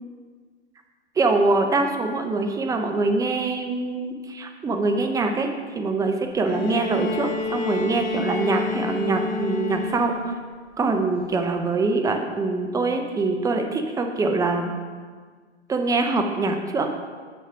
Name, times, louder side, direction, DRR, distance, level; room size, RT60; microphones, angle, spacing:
voice 1, 1.2-10.3 10.8-14.7 15.7-16.9, right 3 dB, 10° right, 4 dB, 0.5 m, -24 dB
Bowed string instrument, 6.4-10.5 11.7-11.8, left 4 dB, 25° left, 0.7 m, -29 dB
7.0 x 5.9 x 4.8 m, 1.6 s
figure-of-eight pair, 105°, 34 cm